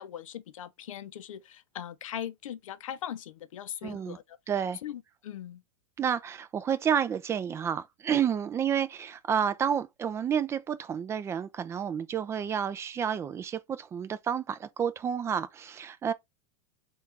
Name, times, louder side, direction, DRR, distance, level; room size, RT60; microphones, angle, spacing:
voice 1, 0.0-4.4 4.8-5.6, left 10 dB, 90° left, 0.5 m, -40 dB
voice 2, 3.8-4.2 4.5-4.8 6.0-16.1, right 8 dB, 15° right, 0.3 m, -30 dB
3.6 x 2.4 x 3.9 m
supercardioid pair, 135°, 17 cm